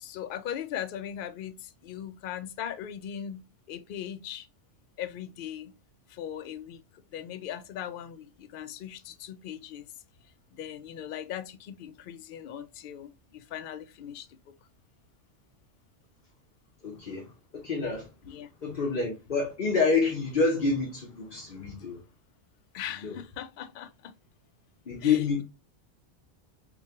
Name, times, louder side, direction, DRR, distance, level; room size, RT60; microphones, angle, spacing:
voice 1, 0.0-4.5 5.0-5.7 6.1-6.8 7.1-9.9 10.6-14.3 18.2-18.5 22.7-24.1 25.0-25.4, left 10 dB, 65° left, 0.5 m, -39 dB
voice 2, 16.8-17.3 17.5-18.1 18.6-22.0 23.0-23.2 24.9-25.4, left 4 dB, 45° left, 1.0 m, -27 dB
5.9 x 2.3 x 2.9 m
omnidirectional pair, 1.3 m